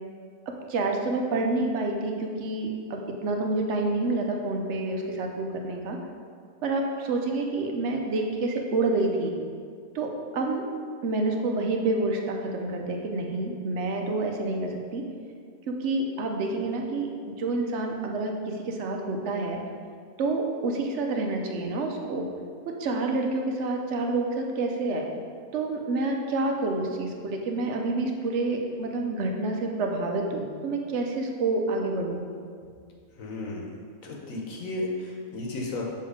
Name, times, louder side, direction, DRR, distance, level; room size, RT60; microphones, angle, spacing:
voice 1, 0.7-6.0 6.6-9.3 9.9-10.6 11.0-15.0 15.7-17.1 17.4-19.6 20.2-22.3 22.8-25.0 25.5-32.2, right 2 dB, 60° right, 2 dB, 0.9 m, -28 dB
voice 2, 33.2-33.7 34.0-35.9, left 2 dB, 70° left, -1 dB, 1.2 m, -33 dB
6.7 x 2.8 x 4.9 m, 2.1 s
omnidirectional pair, 1.5 m